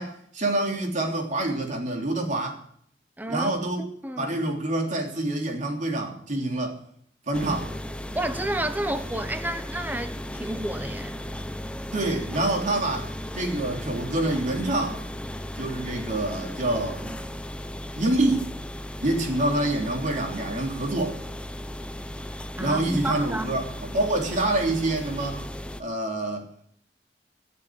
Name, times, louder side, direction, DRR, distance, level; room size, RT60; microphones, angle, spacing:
voice 1, 0.0-2.6 3.3-3.9 4.2-6.8 7.3-7.7 11.9-15.0 15.5-17.2 18.0-18.5 19.0-21.2 22.6-25.5 25.8-26.5, right 2 dB, 45° right, 3.3 m, -26 dB
voice 2, 3.2-3.6 4.0-4.4 8.1-11.2 22.6-23.6, right 1 dB, 10° right, 1.1 m, -31 dB
sound 1, 7.3-25.8, left 1 dB, 5° left, 0.7 m, -36 dB
15.5 x 7.3 x 9.9 m
head